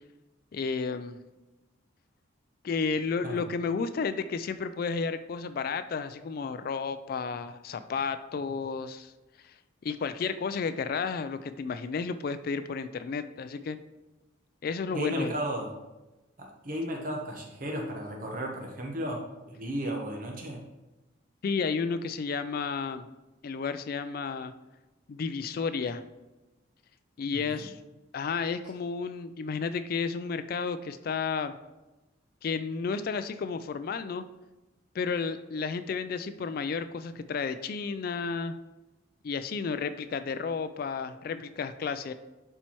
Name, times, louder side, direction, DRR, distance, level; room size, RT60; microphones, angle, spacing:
voice 1, 0.5-1.2 2.6-9.1 9.4-9.5 9.8-13.8 14.6-15.3 21.4-23.1 23.4-24.5 25.1-26.0 27.2-27.8 28.1-31.5 32.4-34.2 34.9-38.5 39.2-42.1, left 5 dB, 50° left, 11 dB, 0.3 m, -32 dB
voice 2, 14.9-15.7 16.4-20.6 27.3-27.7, equal, 45° right, 0 dB, 1.0 m, -34 dB
11.5 x 4.4 x 3.0 m, 1.1 s
head